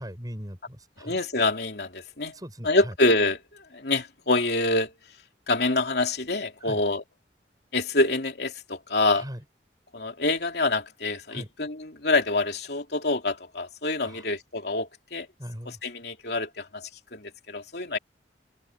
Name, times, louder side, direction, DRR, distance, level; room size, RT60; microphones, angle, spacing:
voice 1, 0.0-1.2 2.3-2.9 6.6-6.8 9.1-9.4 11.3-11.5 14.0-14.3 15.4-15.8, equal, 20° right, 7.9 m, -39 dB
voice 2, 1.0-2.4 2.6-4.9 5.5-7.0 7.7-9.2 9.9-15.3 15.6-18.0, left 2 dB, 65° left, 3.3 m, -26 dB
open air
head